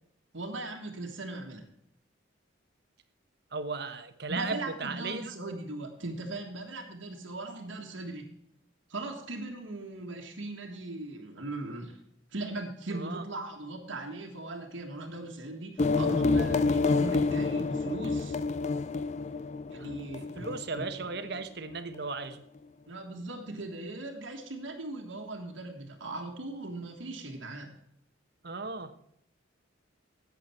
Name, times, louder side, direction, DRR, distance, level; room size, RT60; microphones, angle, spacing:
voice 1, 0.3-1.7 4.3-8.3 8.9-12.0 12.3-18.4 19.7-20.5 22.9-27.8, right 2 dB, 75° right, 1 dB, 1.6 m, -39 dB
voice 2, 3.5-5.3 12.9-13.2 19.8-19.9 20.4-22.4 28.4-28.9, right 4 dB, 55° right, 10 dB, 1.1 m, -36 dB
sound 1, 15.8-21.2, left 3 dB, 35° left, 0.4 m, -28 dB
11.5 x 8.3 x 4.4 m, 0.73 s
head